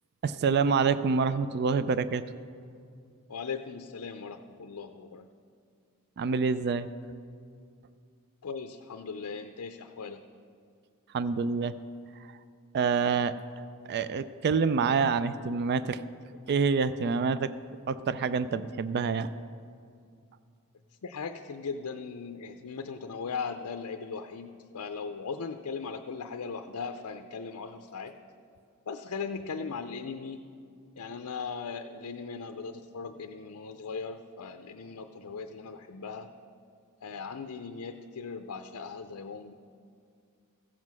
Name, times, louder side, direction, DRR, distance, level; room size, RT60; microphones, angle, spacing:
voice 1, 0.2-2.2 6.2-6.9 11.1-11.7 12.7-13.3 13.9-16.0 16.5-17.5 17.9-19.3, right 5 dB, 50° right, 14 dB, 0.3 m, -27 dB
voice 2, 3.3-5.3 8.4-10.2 21.0-28.1 28.9-30.5 31.0-36.3 37.0-39.5, left 5 dB, 80° left, 6 dB, 0.5 m, -38 dB
15.0 x 7.5 x 6.1 m, 2.3 s
head